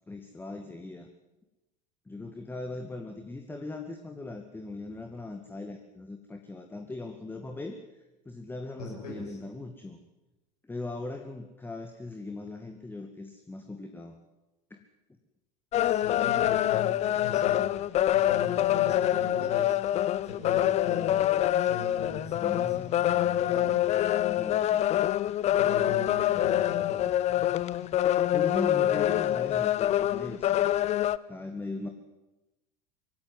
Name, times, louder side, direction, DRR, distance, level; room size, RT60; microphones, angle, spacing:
voice 1, 0.1-1.1 2.1-7.8 8.3-10.0 10.7-14.2 14.7-14.8 22.4-22.8 24.3-25.0 28.3-30.5 31.3-31.9, left 2 dB, 10° left, 6 dB, 2.1 m, -39 dB
voice 2, 8.8-9.4 15.8-17.7 18.1-19.8 20.2-21.2 21.6-23.8 25.6-27.1, left 3 dB, 70° left, -2 dB, 7.1 m, -40 dB
sound 1, 15.7-31.2, left 12 dB, 30° left, 0.8 m, -26 dB
24.0 x 17.0 x 9.7 m, 1.0 s
figure-of-eight pair, 80°, 21 cm